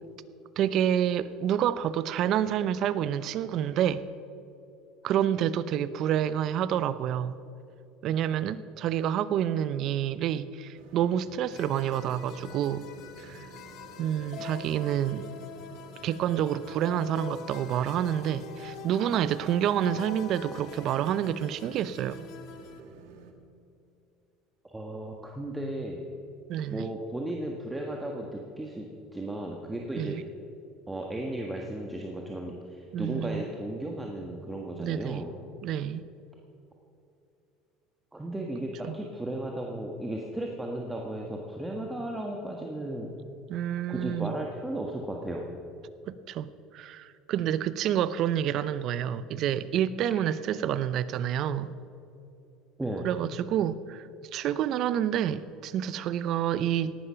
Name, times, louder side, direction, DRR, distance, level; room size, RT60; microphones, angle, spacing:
voice 1, 0.6-4.0 5.0-7.4 8.0-12.8 13.2-13.4 14.0-15.3 16.0-22.3 26.5-26.9 30.0-30.2 32.9-33.4 34.8-35.2 35.6-36.0 38.8-38.9 43.5-44.4 46.1-51.7 53.0-57.0, right 10 dB, 55° right, 15 dB, 0.6 m, -28 dB
sound 1, 10.7-23.3, right 5 dB, 75° right, 1.6 m, -51 dB
sound 2, 11.5-22.8, left 7 dB, 60° left, 1.2 m, -45 dB
voice 2, 24.6-26.0 26.7-30.2 30.9-35.3 38.1-43.1 43.9-45.4 52.8-53.0, right 1 dB, 10° right, 0 dB, 1.6 m, -35 dB
17.5 x 11.5 x 5.8 m, 2.7 s
supercardioid pair, 100°, 0 cm